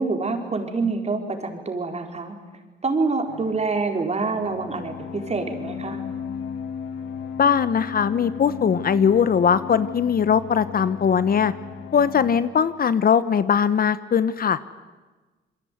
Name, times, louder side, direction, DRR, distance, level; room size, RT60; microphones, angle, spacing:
voice 1, 0.0-2.3 2.8-6.0, right 3 dB, 35° right, 4 dB, 4.8 m, -26 dB
sound 1, 3.3-12.4, left 7 dB, 80° left, 2.0 m, -36 dB
voice 2, 7.4-11.5 11.9-14.6, left 7 dB, 50° left, 14 dB, 1.1 m, -20 dB
27.5 x 22.0 x 9.5 m, 1.2 s
cardioid pair, 90°, 20 cm